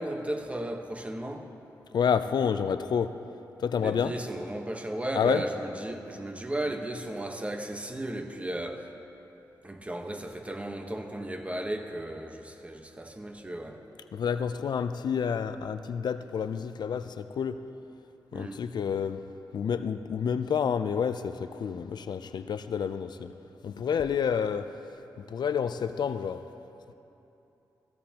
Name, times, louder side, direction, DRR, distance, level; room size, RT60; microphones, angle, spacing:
voice 1, 0.0-1.5 3.8-8.9 9.6-13.9 18.3-18.6, right 1 dB, 15° right, 5 dB, 1.1 m, -35 dB
voice 2, 1.9-3.2 3.6-4.1 5.1-5.4 14.1-17.6 18.3-19.2 19.5-23.3 23.6-24.8 25.3-26.4, left 7 dB, 65° left, 11 dB, 0.4 m, -29 dB
17.0 x 15.5 x 2.9 m, 2.9 s
cardioid pair, 65°, 8 cm